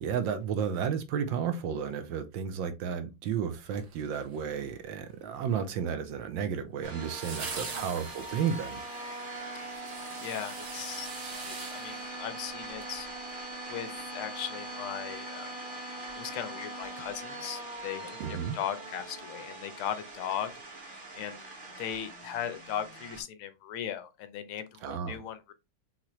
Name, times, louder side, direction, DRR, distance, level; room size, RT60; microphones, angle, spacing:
voice 1, 0.0-8.8 18.2-18.6 24.8-25.2, right 7 dB, 75° right, 1.3 m, -32 dB
sound 1, 3.7-4.6 7.1-12.9 13.3-13.4, right 4 dB, 50° right, 1.6 m, -43 dB
sound 2, 6.8-23.2, right 2 dB, 30° right, 1.3 m, -42 dB
voice 2, 10.2-11.1 11.4-13.1 13.7-15.5 16.2-20.5 21.1-21.4 21.8-25.5, left 9 dB, 85° left, 1.6 m, -38 dB
5.8 x 2.9 x 3.0 m
omnidirectional pair, 2.3 m